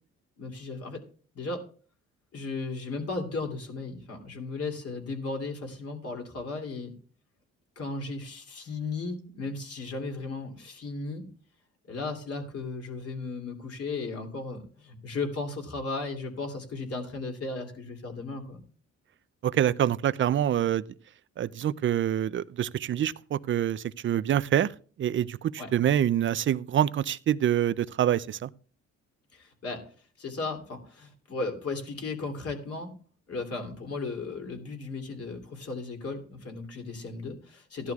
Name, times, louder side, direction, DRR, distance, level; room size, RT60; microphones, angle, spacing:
voice 1, 0.4-1.0 1.3-1.6 2.3-6.9 7.8-11.2 11.9-18.6 25.6-25.7 29.3-29.8 30.2-32.9 33.3-37.9, left 3 dB, 50° left, 2.9 m, -35 dB
voice 2, 19.4-20.8 21.4-24.7 25.0-28.5, right 10 dB, 40° right, 0.4 m, -26 dB
15.5 x 11.5 x 2.4 m
cardioid pair, 90°, 30 cm